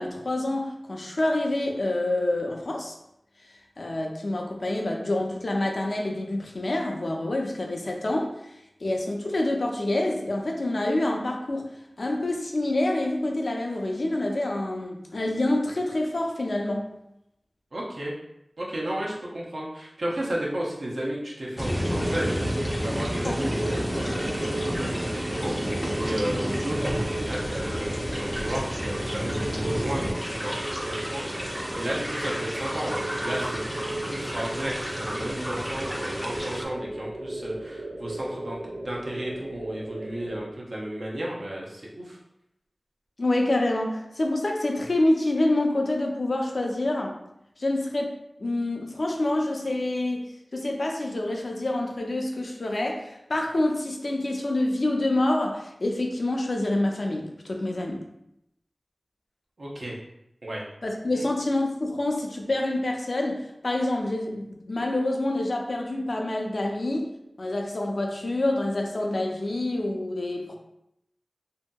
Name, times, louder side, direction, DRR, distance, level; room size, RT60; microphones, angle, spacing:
voice 1, 0.0-2.9 3.8-8.3 8.8-11.7 12.0-16.9 23.2-23.3 43.2-47.2 47.6-58.0 60.8-67.1 67.4-70.6, left 1 dB, 65° left, 2 dB, 0.4 m, -27 dB
voice 2, 17.7-18.1 18.6-33.6 34.1-42.2 59.6-60.0 60.4-60.6 61.1-61.2, right 1 dB, 80° right, -4 dB, 0.6 m, -33 dB
sound 1, 21.6-36.6, equal, 5° right, 0.4 m, -30 dB
sound 2, 22.0-40.4, right 1 dB, 60° right, 1.1 m, -37 dB
2.7 x 2.6 x 2.2 m, 0.80 s
wide cardioid pair, 55°, 0 cm